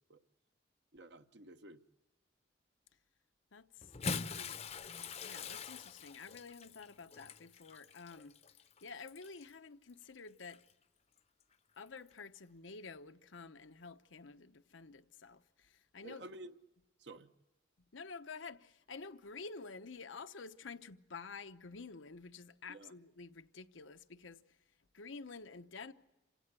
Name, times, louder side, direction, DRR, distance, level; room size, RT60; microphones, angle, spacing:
voice 1, 0.9-1.8 16.0-16.5 17.0-17.3 22.7-22.9, right 2 dB, 65° right, 1.1 m, -51 dB
voice 2, 3.5-3.9 4.2-4.6 5.0-8.3 8.8-10.6 11.8-16.3 17.9-24.4 24.9-25.9, left 4 dB, 90° left, 1.0 m, -50 dB
Bathtub (filling or washing) / Splash splatter, 3.8-9.5 10.4-10.6 12.0-12.1, left 5 dB, 35° left, 0.7 m, -44 dB
28.0 x 16.5 x 8.3 m
head